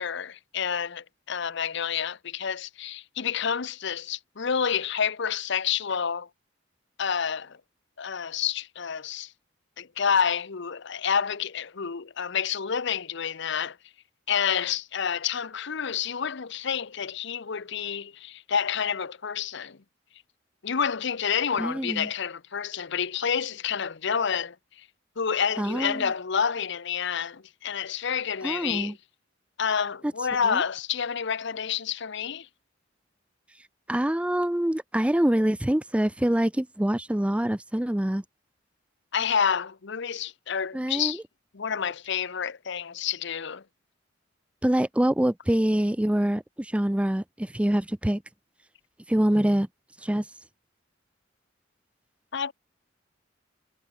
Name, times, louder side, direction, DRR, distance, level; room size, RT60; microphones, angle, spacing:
voice 1, 0.0-6.3 7.0-7.6 8.0-9.3 9.8-13.8 14.3-19.8 20.6-24.9 25.2-29.0 29.6-32.5 39.1-41.2 41.5-43.6 52.3-52.5, left 7 dB, 65° left, 0.8 m, -29 dB
voice 2, 21.6-22.1 25.6-26.1 28.4-28.9 30.4-30.6 33.9-38.2 40.7-41.2 44.6-48.2 49.1-49.7 50.0-50.2, right 1 dB, 5° right, 0.5 m, -25 dB
head